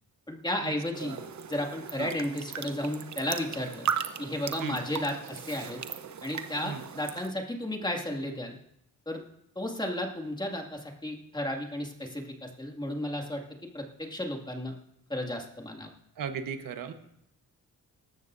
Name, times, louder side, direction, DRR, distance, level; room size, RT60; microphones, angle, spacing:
voice 1, 0.3-1.2 1.5-3.9 4.2-5.8 6.2-8.6 9.1-9.2 9.6-13.4 13.7-14.7 15.1-15.9, left 1 dB, 15° left, 2 dB, 2.3 m, -33 dB
sound 1, 0.9-7.3, right 7 dB, 60° right, 0.9 m, -37 dB
voice 2, 16.2-16.9, right 7 dB, 90° right, 7 dB, 1.2 m, -36 dB
18.0 x 14.0 x 2.7 m, 0.77 s
cardioid pair, 85°, 33 cm